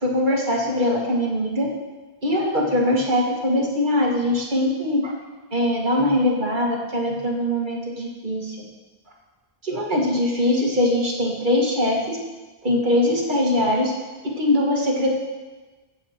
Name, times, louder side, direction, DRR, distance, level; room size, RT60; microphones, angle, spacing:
voice 1, 0.0-1.7 2.2-5.1 5.5-8.6 9.6-12.2 12.6-13.9 14.2-15.2, left 1 dB, 50° right, -1 dB, 1.9 m, -22 dB
15.0 x 7.9 x 4.4 m, 1.2 s
omnidirectional pair, 1.1 m